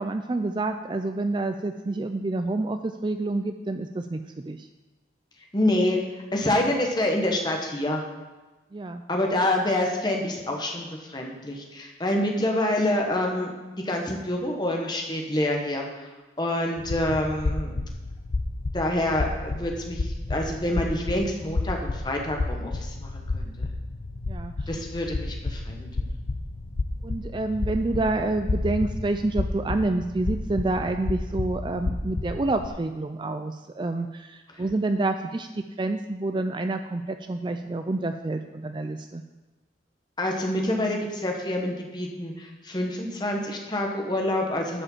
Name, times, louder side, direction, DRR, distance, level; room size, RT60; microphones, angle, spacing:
voice 1, 0.0-4.2 4.5-4.7 8.7-9.0 24.3-24.5 27.0-39.2, right 2 dB, 25° right, 7 dB, 0.4 m, -28 dB
voice 2, 5.5-6.0 6.3-8.0 9.1-13.5 13.8-16.1 16.4-17.7 18.7-23.5 24.7-25.9 34.5-34.6 40.2-44.8, left 1 dB, 25° left, 1 dB, 1.4 m, -27 dB
sound 1, 16.8-32.7, left 2 dB, 75° left, 0.7 m, -31 dB
11.0 x 5.5 x 7.3 m, 1.2 s
head